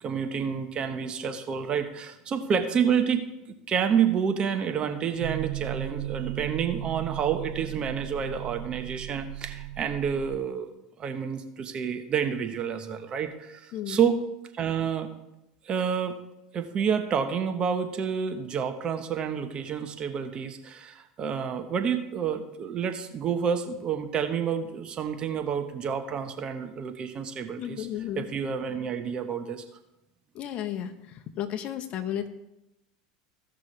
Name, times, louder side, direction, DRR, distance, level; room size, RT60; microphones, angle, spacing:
voice 1, 0.0-10.7 11.0-14.2 14.5-15.1 15.6-16.2 16.5-27.9 28.1-29.6, right 7 dB, 40° right, 7 dB, 1.2 m, -29 dB
sound 1, 5.2-10.4, right 17 dB, 65° right, 0.4 m, -36 dB
voice 2, 27.6-28.3 30.3-30.9 31.4-32.3, left 10 dB, 45° left, 8 dB, 1.0 m, -33 dB
16.0 x 6.0 x 3.3 m, 0.91 s
hypercardioid pair, 95°, 3 cm